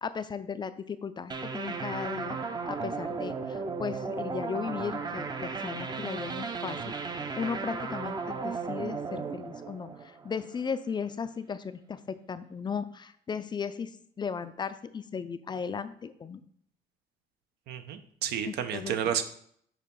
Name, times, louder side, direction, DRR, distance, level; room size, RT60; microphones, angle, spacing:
voice 1, 0.0-2.4 2.7-6.9 7.4-16.4 18.5-19.1, left 6 dB, 25° left, 13 dB, 0.4 m, -36 dB
sound 1, 1.3-10.6, right 4 dB, 25° right, 0.6 m, -35 dB
voice 2, 17.7-19.2, right 9 dB, 75° right, 9 dB, 0.7 m, -31 dB
6.6 x 2.9 x 5.3 m, 0.63 s
cardioid pair, 110°, 17 cm